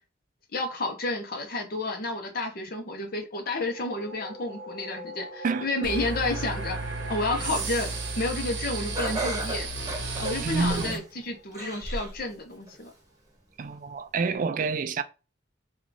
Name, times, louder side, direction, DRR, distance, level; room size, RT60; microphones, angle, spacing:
voice 1, 0.5-6.8 7.1-9.7 10.2-12.9, left 2 dB, 50° left, 0.8 m, -31 dB
sound 1, 3.4-12.8, equal, 15° left, 0.8 m, -45 dB
sound 2, 5.8-11.0, right 3 dB, 70° right, 0.8 m, -33 dB
Laughter, 8.9-11.1 11.5-12.2 12.7-12.8 13.7-13.8, right 2 dB, 20° right, 1.0 m, -33 dB
voice 2, 10.4-11.0 13.6-15.0, right 4 dB, 45° right, 0.3 m, -28 dB
3.1 x 2.3 x 3.8 m
head